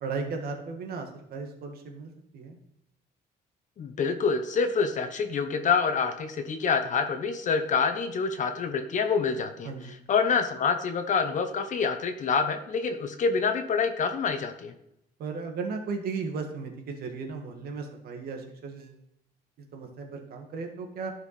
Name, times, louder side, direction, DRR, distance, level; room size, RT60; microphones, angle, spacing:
voice 1, 0.0-2.6 9.6-10.0 15.2-18.9 19.7-21.1, right 4 dB, 65° right, 3 dB, 1.8 m, -36 dB
voice 2, 3.8-9.7 10.1-14.7, left 5 dB, 45° left, 8 dB, 1.1 m, -26 dB
11.5 x 4.7 x 4.2 m, 0.79 s
cardioid pair, 110°, 17 cm